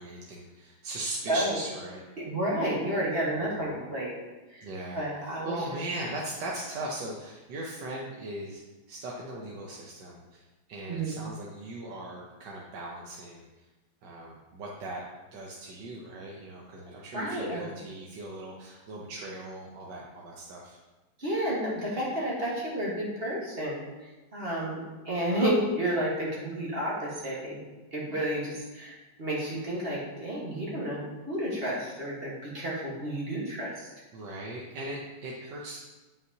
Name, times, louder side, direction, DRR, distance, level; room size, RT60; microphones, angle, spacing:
voice 1, 0.0-2.0 3.4-3.7 4.6-8.6 8.9-10.4 10.7-13.7 14.0-15.0 15.3-20.8 34.1-35.8, right 1 dB, 90° right, -3 dB, 1.5 m, -39 dB
voice 2, 1.3-1.6 2.2-4.1 4.5-4.7 4.9-5.6 10.9-11.1 17.1-17.7 21.2-27.6 27.9-33.9, right 1 dB, 35° right, -5 dB, 1.5 m, -31 dB
7.8 x 5.5 x 2.8 m, 1.1 s
omnidirectional pair, 1.8 m